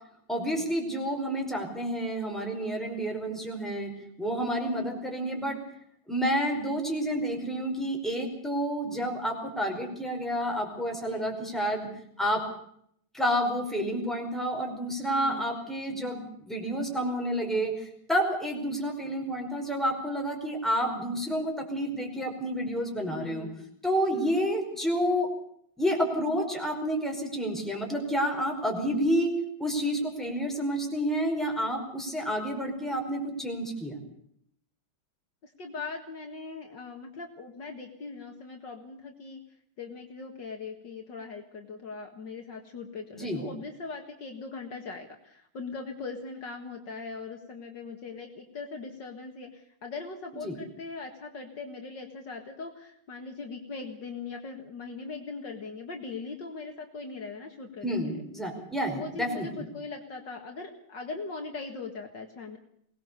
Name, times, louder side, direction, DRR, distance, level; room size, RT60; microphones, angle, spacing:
voice 1, 0.3-3.9 4.2-5.6 6.1-11.9 12.2-12.4 13.1-23.5 23.8-25.3 25.8-29.3 29.6-34.0 43.1-43.5 50.4-50.6 57.8-59.6, equal, ahead, 1 dB, 5.0 m, -29 dB
voice 2, 11.0-11.6 15.1-15.5 23.0-23.5 24.1-24.4 35.4-39.4 39.8-58.2 58.9-62.6, left 4 dB, 60° left, 3 dB, 2.5 m, -40 dB
23.0 x 19.0 x 6.9 m, 0.69 s
omnidirectional pair, 2.2 m